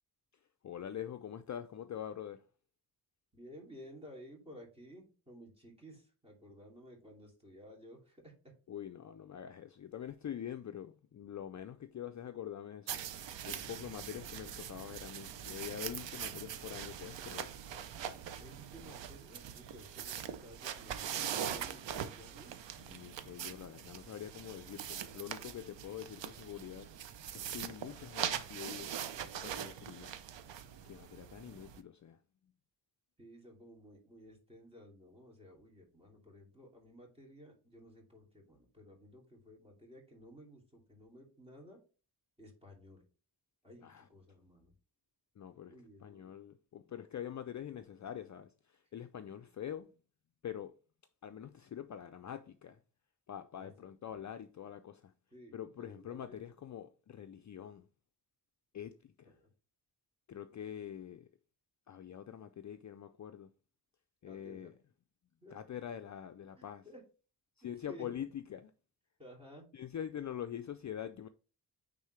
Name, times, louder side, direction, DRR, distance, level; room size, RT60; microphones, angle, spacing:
voice 1, 0.6-2.4 8.7-13.0 13.5-17.5 22.8-26.9 27.3-28.9 29.2-30.1 30.8-32.2 43.8-44.1 45.4-45.7 46.0-49.9 50.4-50.8 51.2-52.8 53.3-55.1 55.5-57.9 58.7-59.3 60.3-61.3 61.9-63.5 64.2-64.7 65.5-66.8 67.6-68.7 69.7-71.3, left 9 dB, 45° left, 0.4 m, -45 dB
voice 2, 3.3-8.3 18.4-22.5 33.2-41.8 42.4-43.0 43.6-44.7 45.7-46.3 53.6-53.7 55.3-56.5 59.2-59.5 64.3-64.7 65.4-65.5 66.6-67.0 67.6-68.3 69.2-69.7, equal, 15° right, 2.6 m, -55 dB
sound 1, 12.9-31.8, right 9 dB, 90° right, 0.7 m, -42 dB
9.1 x 3.7 x 3.2 m
wide cardioid pair, 115°, 42 cm